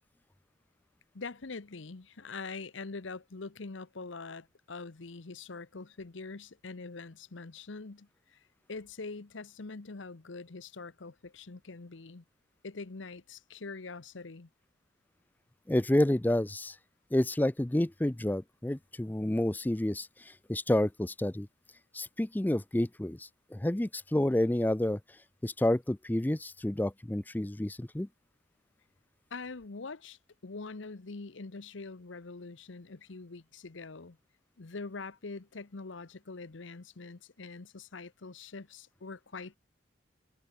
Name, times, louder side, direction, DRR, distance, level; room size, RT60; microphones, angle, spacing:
voice 1, 1.1-8.4 8.7-12.2 12.6-14.5 29.3-34.2 34.6-39.6, left 3 dB, 75° left, 0.9 m, -44 dB
voice 2, 15.7-16.8 17.1-21.5 21.9-25.0 25.4-28.1, left 1 dB, 10° left, 0.4 m, -29 dB
head